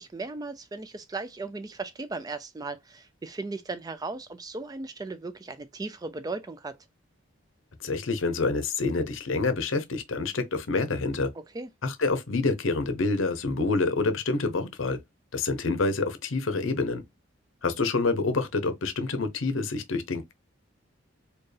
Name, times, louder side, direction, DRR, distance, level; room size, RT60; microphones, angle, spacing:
voice 1, 0.0-6.8 11.3-11.7, right 3 dB, 20° right, 0.3 m, -37 dB
voice 2, 7.8-11.3 11.8-15.0 15.3-17.0 17.6-20.3, left 3 dB, 75° left, 0.7 m, -27 dB
4.4 x 2.3 x 3.3 m
head